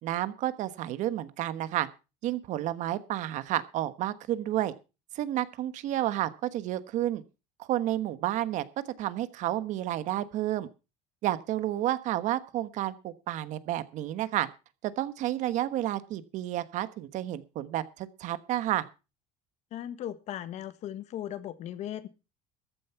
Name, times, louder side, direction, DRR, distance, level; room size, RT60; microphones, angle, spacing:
voice 1, 0.0-1.9 2.2-4.7 5.1-7.2 7.6-8.6 9.0-10.7 11.2-14.5 14.8-18.8, right 13 dB, 60° right, 1.3 m, -31 dB
voice 2, 19.7-22.1, left 11 dB, 55° left, 1.4 m, -37 dB
14.0 x 9.4 x 5.8 m
cardioid pair, 135°, 14 cm